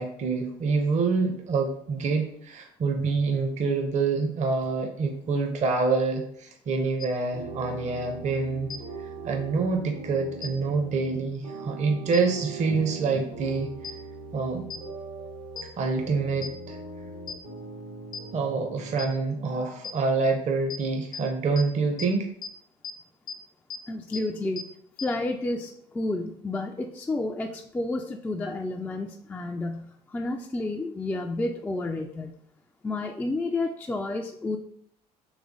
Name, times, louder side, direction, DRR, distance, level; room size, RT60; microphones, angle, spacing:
voice 1, 0.0-8.7 9.2-13.7 14.3-14.7 15.8-16.8 18.3-22.3, right 4 dB, 35° right, 4 dB, 0.6 m, -26 dB
sound 1, 7.0-7.1 8.7-8.8 10.4-10.5 12.1-12.2 13.8-13.9 14.7-14.8 15.6-15.7 16.4-16.5 17.3-17.4 18.1-18.2 19.0-19.1 19.8-19.9 20.7-20.8 21.1-21.2 21.6-21.7 22.0-22.1 22.4-22.5 22.8-22.9 23.3-23.4 23.7-23.8 24.1-24.2 24.6-24.7 25.0-25.1, left 5 dB, 45° left, 0.7 m, -35 dB
sound 2, 7.3-19.1, right 3 dB, 85° right, 1.2 m, -40 dB
voice 2, 23.9-24.6 25.0-32.3 32.8-34.6, left 2 dB, 10° left, 3 dB, 0.3 m, -30 dB
3.2 x 3.1 x 3.7 m, 0.68 s
figure-of-eight pair, 60°, 20 cm